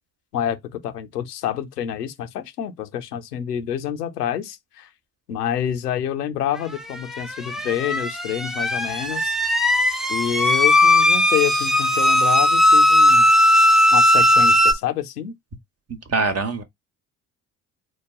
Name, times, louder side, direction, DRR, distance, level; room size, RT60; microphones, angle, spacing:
voice 1, 0.3-4.9 5.3-9.3 10.1-13.3 13.9-15.3, left 10 dB, 90° left, 0.7 m, -27 dB
sound 1, 7.1-14.7, left 1 dB, ahead, 0.7 m, -17 dB
voice 2, 16.1-16.6, right 3 dB, 35° right, 1.1 m, -22 dB
4.7 x 2.2 x 3.6 m
hypercardioid pair, 50°, 45 cm